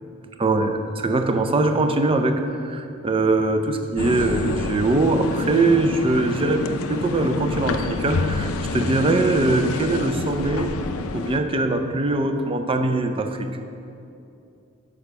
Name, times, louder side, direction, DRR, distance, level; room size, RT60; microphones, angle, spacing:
voice 1, 0.4-10.7 11.1-13.5, right 2 dB, 25° right, 7 dB, 0.4 m, -22 dB
sound 1, 4.0-11.4, left 3 dB, 75° left, 0.4 m, -27 dB
6.4 x 4.9 x 6.7 m, 2.6 s
head